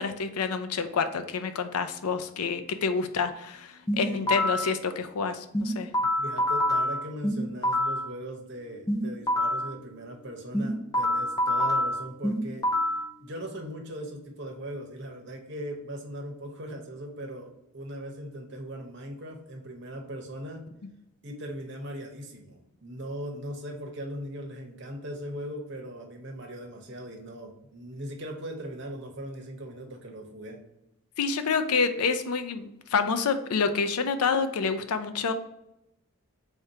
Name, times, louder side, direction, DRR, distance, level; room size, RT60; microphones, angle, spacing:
voice 1, 0.0-5.9 31.2-35.3, left 5 dB, 85° left, 9 dB, 0.5 m, -28 dB
sound 1, 3.9-4.7 5.5-8.1 8.9-9.7 10.5-13.1, left 1 dB, 15° left, 0.5 m, -26 dB
voice 2, 4.1-4.5 6.0-12.6 13.2-20.7 21.2-30.6, equal, 50° right, 3 dB, 0.9 m, -39 dB
3.5 x 2.7 x 4.6 m, 0.86 s
head